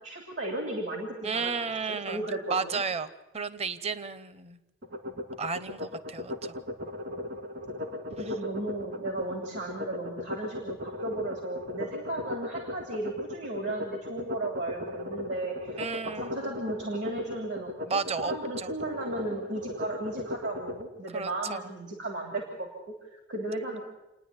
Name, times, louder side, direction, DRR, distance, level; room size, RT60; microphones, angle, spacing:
voice 1, 0.0-1.5 1.9-2.8 8.2-23.8, right 2 dB, 80° right, 2 dB, 3.1 m, -35 dB
voice 2, 1.2-4.6 5.4-6.6 8.2-8.3 15.8-16.6 17.9-18.7 21.1-21.6, right 5 dB, 35° right, 14 dB, 0.7 m, -33 dB
sound 1, 4.8-20.8, left 1 dB, 60° right, 2.0 m, -37 dB
28.5 x 10.0 x 9.6 m, 0.97 s
head